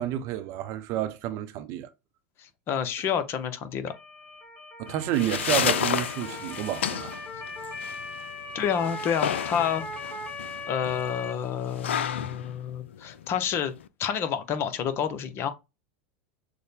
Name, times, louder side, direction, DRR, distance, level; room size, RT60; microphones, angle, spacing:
voice 1, 0.0-1.9 4.8-7.2, right 12 dB, 50° right, 0.7 m, -30 dB
voice 2, 2.4-3.9 8.5-9.8 10.7-13.7 14.0-15.5, left 8 dB, 40° left, 0.9 m, -29 dB
Motor vehicle (road) / Siren, 3.9-11.3, left 2 dB, 20° left, 2.0 m, -39 dB
sound 1, 4.9-13.9, left 9 dB, 80° left, 0.4 m, -32 dB
6.5 x 2.2 x 3.5 m
hypercardioid pair, 95°, 6 cm